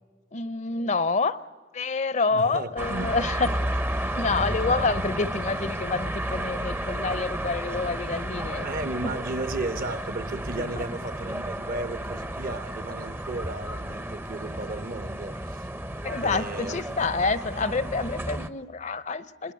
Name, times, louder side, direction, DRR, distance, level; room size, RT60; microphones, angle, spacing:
voice 1, 0.3-1.4 1.7-3.5 4.0-8.7 9.0-9.1 10.8-10.9 16.0-19.5, left 4 dB, 40° left, 0.7 m, -27 dB
voice 2, 2.3-3.1 3.4-3.5 8.6-15.7 16.2-16.8, right 2 dB, 50° right, 1.0 m, -34 dB
sound 1, 2.8-18.5, right 1 dB, 10° right, 0.7 m, -32 dB
28.5 x 21.0 x 9.1 m
head